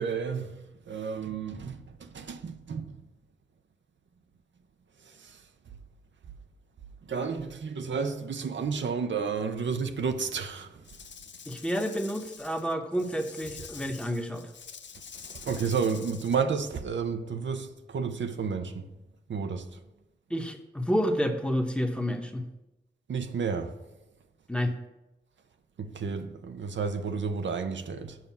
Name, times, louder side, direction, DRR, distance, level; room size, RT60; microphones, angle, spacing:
voice 1, 0.0-3.0 5.2-5.4 7.1-10.8 15.3-18.9 19.3-19.8 23.1-23.7 25.8-28.2, right 5 dB, 85° right, 0.7 m, -31 dB
Rattle / Rattle (instrument), 10.8-16.4, left 6 dB, 80° left, 0.5 m, -47 dB
voice 2, 11.5-14.5 20.3-22.5 24.5-24.8, equal, 5° left, 0.9 m, -29 dB
7.4 x 5.3 x 7.2 m
wide cardioid pair, 65°, 19 cm